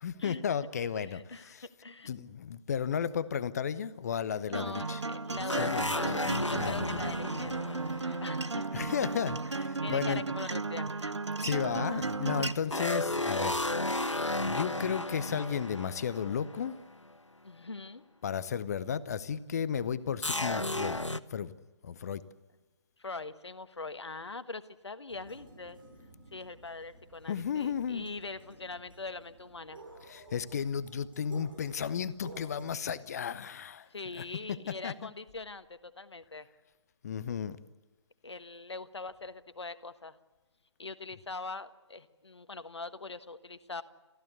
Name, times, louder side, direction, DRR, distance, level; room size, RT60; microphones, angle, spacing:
voice 1, 0.0-1.7 2.0-5.0 5.6-5.9 6.6-7.0 8.7-10.2 11.4-13.6 13.9-16.8 18.2-21.0 21.3-21.5 21.8-22.2 27.3-28.1 30.1-33.9 34.2-34.9 37.0-37.6, left 7 dB, 35° left, 16 dB, 0.8 m, -34 dB
voice 2, 1.0-2.1 4.5-8.7 9.8-11.1 11.9-12.0 17.4-18.0 23.0-25.8 26.3-29.8 33.9-36.5 38.2-40.2 40.8-43.8, left 3 dB, 70° left, 12 dB, 1.4 m, -42 dB
Acoustic guitar, 4.5-12.5, right 3 dB, 70° right, 1.2 m, -34 dB
sound 1, 5.5-9.0 12.7-16.8 17.0-17.1 20.2-21.2, left 1 dB, 90° left, 1.0 m, -33 dB
sound 2, 25.1-32.7, right 2 dB, 45° right, 6.8 m, -53 dB
29.5 x 15.0 x 8.2 m, 1.2 s
figure-of-eight pair, 140°, 15 cm